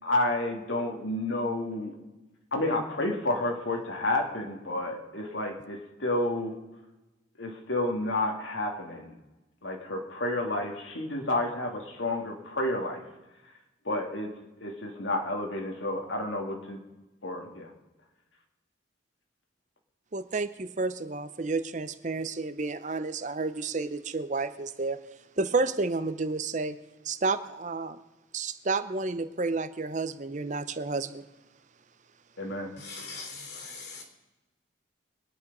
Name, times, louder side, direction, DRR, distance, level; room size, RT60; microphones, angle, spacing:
voice 1, 0.0-1.9 2.5-6.5 7.4-9.1 9.6-13.0 13.8-14.3 14.6-16.8 17.2-17.7 32.4-32.7, left 1 dB, 75° left, 2 dB, 2.2 m, -30 dB
voice 2, 20.1-25.0 25.4-26.8 27.0-28.0 28.3-31.2, right 3 dB, 40° right, 12 dB, 0.6 m, -31 dB
voice 3, 32.8-34.0, left 4 dB, 60° left, 3 dB, 3.2 m, -41 dB
23.0 x 9.6 x 5.4 m, 1.1 s
head